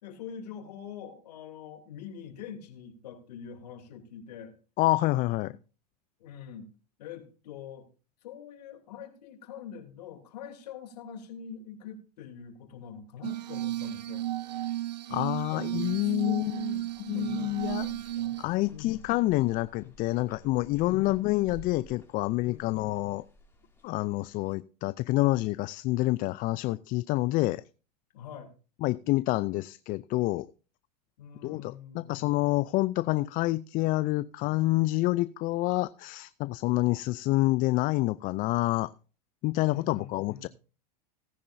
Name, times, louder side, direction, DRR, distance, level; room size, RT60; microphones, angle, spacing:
voice 1, 0.0-4.6 5.4-5.6 6.2-6.7 7.0-7.9 8.2-14.2 15.5-15.7 16.0-18.4 18.7-19.0 20.7-21.2 22.4-22.9 28.1-28.5 31.2-32.3 39.6-40.5, left 8 dB, 75° left, 5 dB, 3.1 m, -44 dB
voice 2, 4.8-5.6 15.1-16.5 17.1-17.9 18.4-23.2 23.8-27.6 28.8-30.5 31.4-38.9 39.4-40.5, left 19 dB, 40° left, 17 dB, 0.5 m, -27 dB
Glass, 13.2-18.4, right 14 dB, 85° right, 0.7 m, -34 dB
sound 1, 15.6-24.5, left 1 dB, 10° left, 4.3 m, -54 dB
18.0 x 10.5 x 2.6 m, 0.35 s
hypercardioid pair, 100°, 21 cm